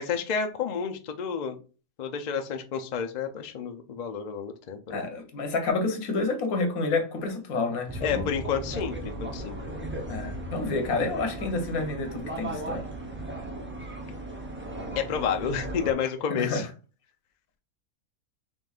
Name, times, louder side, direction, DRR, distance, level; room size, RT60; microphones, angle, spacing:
voice 1, 0.0-1.6 2.0-5.0 8.0-9.5 15.0-16.7, left 7 dB, 70° left, 0.4 m, -30 dB
voice 2, 4.9-8.2 10.1-12.8 16.4-16.6, left 3 dB, 85° left, 1.4 m, -29 dB
sound 1, 7.9-15.9, right 1 dB, 15° right, 0.4 m, -36 dB
5.2 x 3.1 x 2.4 m
omnidirectional pair, 1.4 m